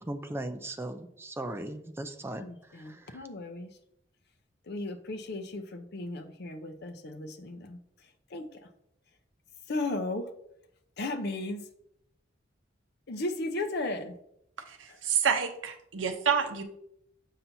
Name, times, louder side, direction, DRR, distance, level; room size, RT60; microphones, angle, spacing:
voice 1, 0.0-2.5 2.9-3.2, right 1 dB, 15° right, 0.5 m, -38 dB
voice 2, 2.4-3.8 4.6-7.8 8.3-8.7 9.7-10.3 11.0-11.7 13.1-14.2 14.9-15.0, left 2 dB, 60° left, 0.7 m, -35 dB
voice 3, 14.7-16.6, right 7 dB, 80° right, 0.7 m, -28 dB
7.3 x 5.7 x 2.7 m
head